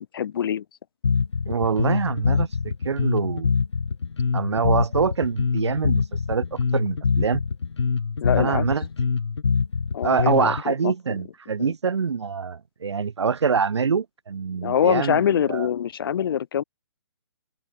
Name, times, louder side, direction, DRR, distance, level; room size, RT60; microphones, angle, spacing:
voice 1, 0.1-0.6 8.2-8.7 9.9-11.2 11.6-11.7 14.6-16.6, left 9 dB, 55° left, 2.5 m, -24 dB
Bass guitar, 1.0-10.6, left 5 dB, 90° left, 1.8 m, -24 dB
voice 2, 1.5-3.5 4.3-6.0 6.3-6.5 6.7-7.4 8.4-8.8 10.0-15.7, right 5 dB, 80° right, 2.1 m, -25 dB
hypercardioid pair, 150°, 14 cm